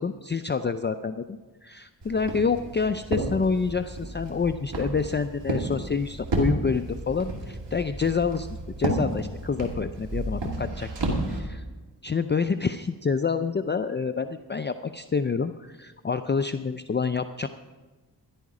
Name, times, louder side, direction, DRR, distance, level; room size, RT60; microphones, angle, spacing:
voice 1, 0.0-8.5 8.8-10.9 11.3-11.6 12.0-17.5, left 5 dB, 25° left, 9 dB, 0.4 m, -27 dB
Walk footsteps, 2.0-11.4, right 2 dB, 85° right, 2.5 m, -32 dB
13.5 x 11.5 x 4.9 m, 1.2 s
wide cardioid pair, 70°, 40 cm